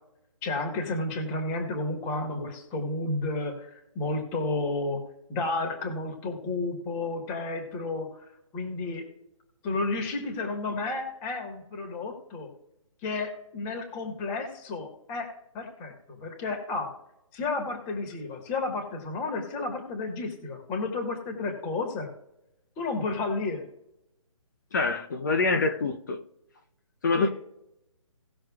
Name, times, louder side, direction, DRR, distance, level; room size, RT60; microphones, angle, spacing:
voice 1, 0.4-5.0 5.3-8.1 8.5-9.0 9.6-12.5 13.0-15.3 15.5-16.9 17.3-22.1 22.8-23.6 27.1-27.3, left 3 dB, 15° left, 1.6 m, -31 dB
voice 2, 24.7-26.2 27.0-27.3, left 3 dB, 35° left, 0.8 m, -25 dB
18.0 x 6.3 x 2.4 m
hypercardioid pair, 165°, 18 cm